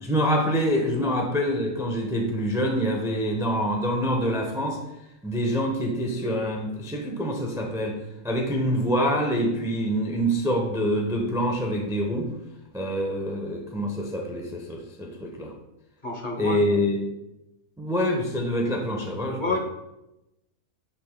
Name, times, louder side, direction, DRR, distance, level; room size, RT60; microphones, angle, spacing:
voice 1, 0.0-4.8 5.2-8.0 8.2-12.3 12.7-15.5 16.4-17.0 17.8-19.6, equal, 5° right, 1 dB, 0.4 m, -26 dB
voice 2, 16.0-16.8 19.4-19.6, left 2 dB, 40° left, 0 dB, 0.8 m, -29 dB
7.4 x 6.6 x 2.2 m, 0.92 s
omnidirectional pair, 1.7 m